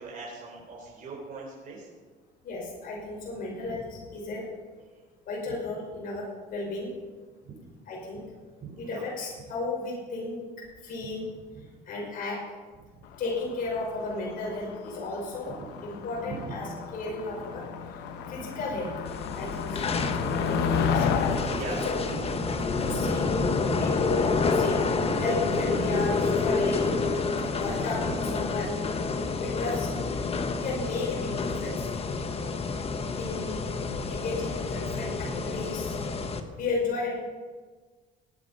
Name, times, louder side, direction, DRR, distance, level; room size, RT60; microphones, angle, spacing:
voice 1, 0.0-1.9 7.5-7.6 8.6-9.1 11.6-11.7 15.6-15.7 16.2-16.6 19.6-19.7 21.5-21.8 28.0-28.1, right 4 dB, 55° right, -4 dB, 4.3 m, -40 dB
voice 2, 2.4-4.5 5.3-6.9 7.9-8.2 8.8-10.4 10.8-11.3 11.8-12.4 13.2-15.5 15.8-16.7 16.9-17.6 17.9-18.0 18.3-18.9 19.4-19.9 20.8-21.1 21.7-22.3 22.8-23.3 23.8-24.8 25.2-26.9 27.6-28.9 29.4-29.9 30.6-31.9 33.1-33.7 34.1-36.0 36.6-37.2, left 3 dB, 55° left, -3 dB, 5.8 m, -33 dB
Motor vehicle (road), 13.1-23.5, left 6 dB, 85° left, 1.3 m, -32 dB
sound 1, 19.1-36.4, left 4 dB, 35° left, 1.3 m, -29 dB
sound 2, 19.6-28.6, right 2 dB, 35° right, 5.0 m, -39 dB
19.5 x 10.0 x 5.7 m, 1.4 s
cardioid pair, 110°, 17 cm